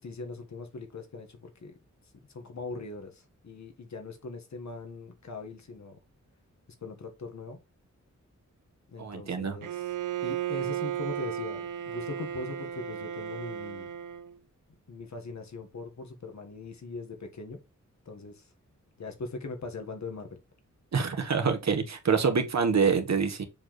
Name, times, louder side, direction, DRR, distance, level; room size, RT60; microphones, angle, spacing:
voice 1, 0.0-1.7 2.3-6.0 6.8-7.6 8.9-9.8 10.2-13.9 14.9-17.6 18.0-18.4 19.0-20.4, left 3 dB, 65° left, 1.7 m, -40 dB
voice 2, 9.0-9.6 20.9-23.5, right 5 dB, 65° right, 1.5 m, -26 dB
Bowed string instrument, 9.6-14.4, right 10 dB, 90° right, 0.6 m, -34 dB
7.1 x 4.6 x 3.3 m
wide cardioid pair, 125°, 30 cm